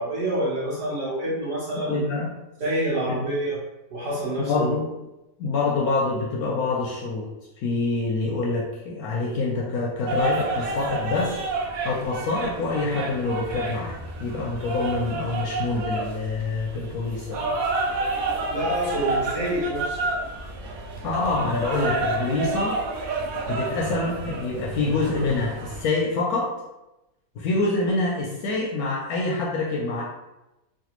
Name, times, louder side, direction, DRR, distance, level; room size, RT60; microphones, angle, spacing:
voice 1, 0.0-2.0 2.6-3.6 3.9-4.7 18.5-20.0, right 1 dB, 50° right, -8 dB, 1.3 m, -27 dB
voice 2, 1.7-2.3 3.1-3.2 4.4-4.9 5.4-7.3 7.6-17.6 21.0-22.8 23.5-26.5 27.4-30.0, left 3 dB, 70° left, -3 dB, 0.9 m, -26 dB
sound 1, 10.1-25.8, right 3 dB, 70° right, 0.8 m, -30 dB
3.2 x 2.4 x 2.9 m, 0.96 s
omnidirectional pair, 1.9 m